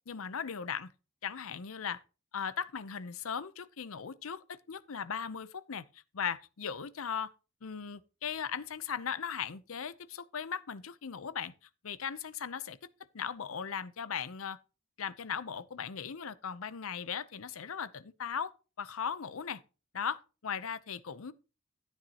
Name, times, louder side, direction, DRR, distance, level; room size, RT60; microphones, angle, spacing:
voice 1, 0.1-0.9 1.2-2.0 2.3-7.3 7.6-11.5 11.8-12.8 13.1-14.6 15.0-19.6 19.9-21.3, left 7 dB, 80° left, 0.7 m, -38 dB
13.0 x 9.2 x 2.9 m
head